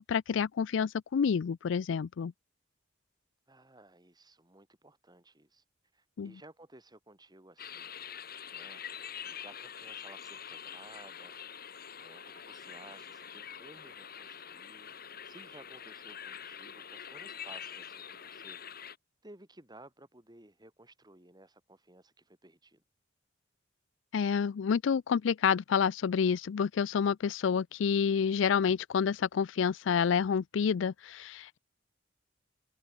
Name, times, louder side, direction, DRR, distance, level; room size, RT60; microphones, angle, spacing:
voice 1, 0.0-2.3 6.2-6.3 24.1-31.6, left 6 dB, 70° left, 0.4 m, -28 dB
voice 2, 3.5-5.6 5.9-7.9 8.5-8.8 9.1-11.4 12.0-14.9 15.2-18.6 19.2-22.8, right 2 dB, 20° right, 4.6 m, -56 dB
sound 1, 7.6-19.0, left 8 dB, 50° left, 3.7 m, -45 dB
head